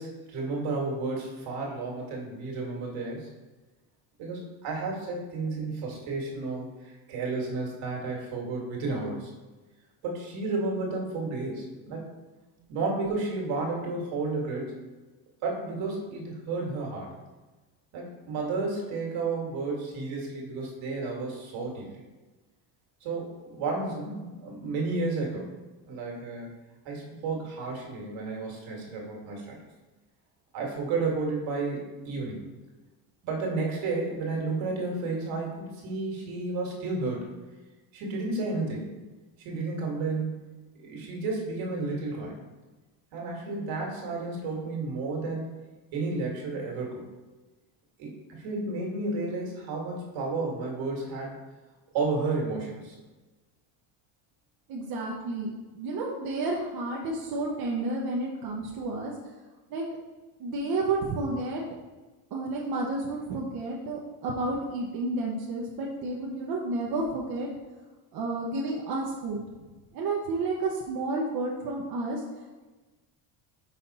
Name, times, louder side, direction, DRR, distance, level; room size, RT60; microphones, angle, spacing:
voice 1, 0.0-3.3 4.2-9.3 10.0-12.1 12.7-14.7 15.4-17.1 17.9-21.9 23.0-25.5 25.8-26.5 26.8-29.6 30.5-32.4 33.2-37.2 37.9-39.0 39.4-40.3 40.8-42.3 43.1-45.5 45.9-47.0 48.0-51.4 51.9-53.0, right 3 dB, 70° right, -1 dB, 2.0 m, -32 dB
voice 2, 54.7-59.1 59.7-59.8 60.4-61.6 62.3-67.5 68.1-69.4 69.9-72.2, right 2 dB, 50° right, -3 dB, 0.9 m, -31 dB
5.8 x 4.2 x 4.1 m, 1.2 s
cardioid pair, 115°, 49 cm